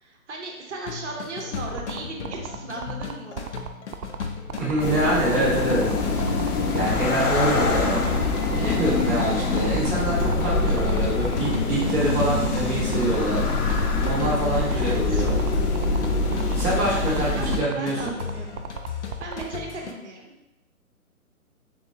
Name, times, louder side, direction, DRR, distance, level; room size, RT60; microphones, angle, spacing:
voice 1, 0.0-3.5 14.7-15.2 17.2-18.6 19.2-20.3, right 3 dB, 50° right, 1 dB, 0.8 m, -37 dB
sound 1, 0.9-19.9, left 6 dB, 55° left, 0.5 m, -36 dB
sound 2, 1.7-19.4, right 8 dB, 80° right, 0.5 m, -35 dB
voice 2, 4.6-5.8 6.7-8.0 8.5-13.4 14.0-15.4 16.5-18.1, right 1 dB, 10° right, -11 dB, 0.6 m, -25 dB
sound 3, 4.8-17.6, left 3 dB, 85° left, 0.7 m, -24 dB
3.8 x 3.6 x 2.7 m, 0.94 s
figure-of-eight pair, 145°, 44 cm